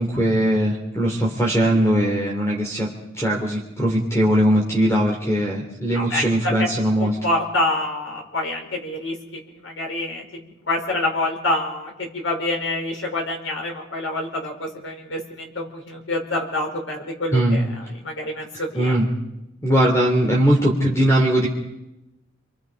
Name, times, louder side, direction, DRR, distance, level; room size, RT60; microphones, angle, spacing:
voice 1, 0.0-2.9 3.2-7.1 17.3-17.6 18.7-19.1 19.6-21.5, right 1 dB, 15° left, 0 dB, 3.0 m, -20 dB
voice 2, 5.9-6.7 7.0-10.2 10.7-17.6 18.0-19.0, left 1 dB, 75° left, 1 dB, 5.5 m, -26 dB
30.0 x 23.5 x 5.2 m, 0.94 s
head